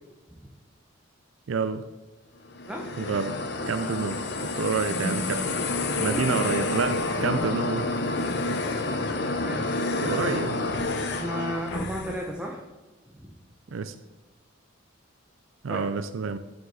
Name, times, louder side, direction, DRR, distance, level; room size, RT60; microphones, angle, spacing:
voice 1, 1.5-1.8 3.0-3.4 3.7-5.6 6.0-7.9 10.0-10.5 13.7-13.9 15.6-16.4, right 5 dB, 75° right, 11 dB, 0.5 m, -28 dB
sound 1, 2.5-12.3, left 2 dB, 55° left, 0.8 m, -29 dB
voice 2, 6.0-6.4 8.8-9.0 9.4-9.8 10.1-10.5 11.1-12.6 13.1-13.3 15.7-15.9, equal, 5° right, -2 dB, 0.9 m, -34 dB
12.5 x 5.2 x 4.0 m, 1.2 s
head